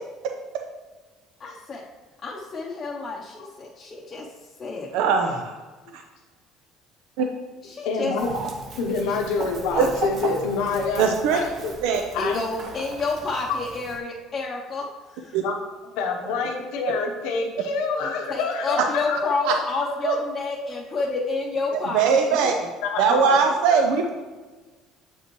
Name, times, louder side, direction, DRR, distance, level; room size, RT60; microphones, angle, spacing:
voice 1, 1.4-1.8 2.2-4.3 4.6-5.3 7.6-8.2 9.1-9.2 12.2-15.4 18.3-22.4, left 3 dB, 30° left, -4 dB, 0.7 m, -30 dB
voice 2, 4.9-5.5 5.9-6.0 7.2-7.3 9.8-9.9 11.0-11.4 11.8-12.0 15.3-15.4 19.5-19.6 20.0-20.1 21.9-22.7 23.0-24.1, right 6 dB, 80° right, 4 dB, 0.5 m, -20 dB
voice 3, 7.8-8.3 8.8-11.7 12.1-12.4 13.6-13.7 15.4-15.6 16.0-20.0 20.6-21.3 22.8-23.4, left 4 dB, 90° left, 1 dB, 0.8 m, -27 dB
Chicken rooster, 8.2-14.0, right 3 dB, 45° right, 0.8 m, -35 dB
7.7 x 5.4 x 3.0 m, 1.3 s
cardioid pair, 140°, 0 cm